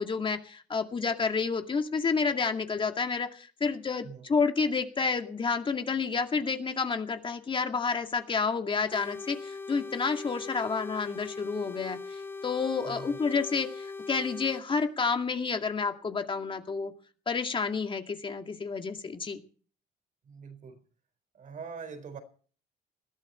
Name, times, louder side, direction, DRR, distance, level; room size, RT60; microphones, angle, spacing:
voice 1, 0.0-16.9 17.3-19.4, left 5 dB, 30° left, 2.2 m, -30 dB
sound 1, 8.9-14.6, left 4 dB, 15° left, 0.8 m, -40 dB
voice 2, 12.8-13.2 20.2-20.8 21.3-22.2, right 6 dB, 50° right, 4.3 m, -43 dB
20.5 x 13.5 x 4.4 m
cardioid pair, 110°, 17 cm